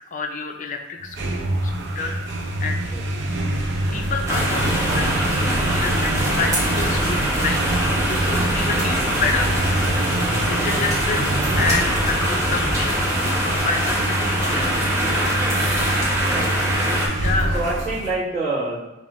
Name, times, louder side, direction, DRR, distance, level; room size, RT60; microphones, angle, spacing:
voice 1, 0.0-2.2 2.6-2.8 3.9-7.6 8.1-9.6 9.9-10.0 10.4-11.2 11.6-13.1 13.3-14.8 17.2-17.5, left 4 dB, 40° left, 4 dB, 0.4 m, -28 dB
sound 1, 1.0-18.2, right 1 dB, 60° right, 0.6 m, -25 dB
sound 2, 4.3-17.1, equal, 15° right, 0.8 m, -23 dB
voice 2, 16.2-16.5 17.5-18.8, right 2 dB, 35° right, -11 dB, 1.4 m, -26 dB
5.3 x 2.3 x 3.0 m, 0.99 s
head